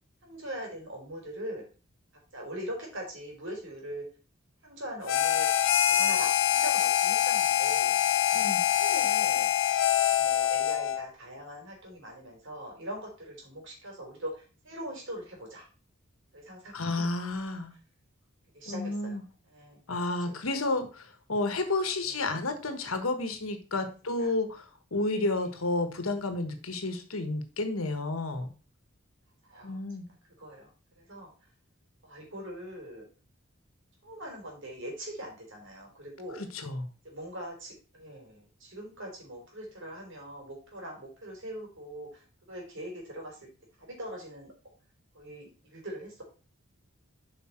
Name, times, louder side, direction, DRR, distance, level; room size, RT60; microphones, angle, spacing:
voice 1, 0.2-1.7 2.3-4.1 4.6-5.5 5.9-8.0 8.7-9.5 10.1-15.7 16.3-16.8 18.5-19.8 20.1-20.3 22.1-22.2 24.0-24.3 29.4-29.8 30.4-30.7 31.0-31.3 32.0-33.0 34.0-36.5 37.0-43.5 43.8-44.5 45.1-46.2, equal, 65° right, 0 dB, 3.6 m, -42 dB
Harmonica, 5.1-11.1, left 11 dB, 65° left, 0.7 m, -25 dB
voice 2, 16.7-17.7 18.7-19.2 19.9-24.6 24.9-28.5 29.6-30.1 36.4-36.9, left 2 dB, 80° left, 7 dB, 1.3 m, -31 dB
7.7 x 5.4 x 4.4 m, 0.35 s
head